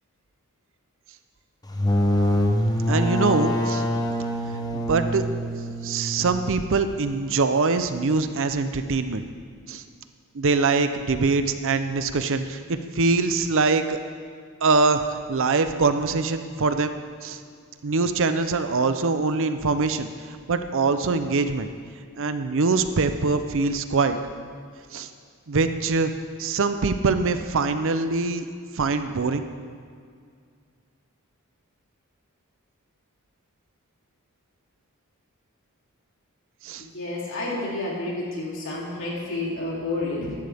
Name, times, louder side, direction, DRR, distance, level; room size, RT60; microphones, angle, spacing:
sound 1, 1.7-7.2, equal, 20° left, 0.8 m, -25 dB
voice 1, 2.9-3.8 4.7-5.2 5.8-9.3 9.7-9.8 10.3-14.0 14.6-16.9 17.2-17.4 17.8-21.7 22.2-24.2 24.9-25.1 25.5-26.1 26.4-28.5 28.7-29.4 36.6-36.8, right 4 dB, 60° right, 9 dB, 0.7 m, -23 dB
voice 2, 36.8-40.3, left 2 dB, 60° left, -4 dB, 3.1 m, -30 dB
15.0 x 11.5 x 3.5 m, 2.1 s
head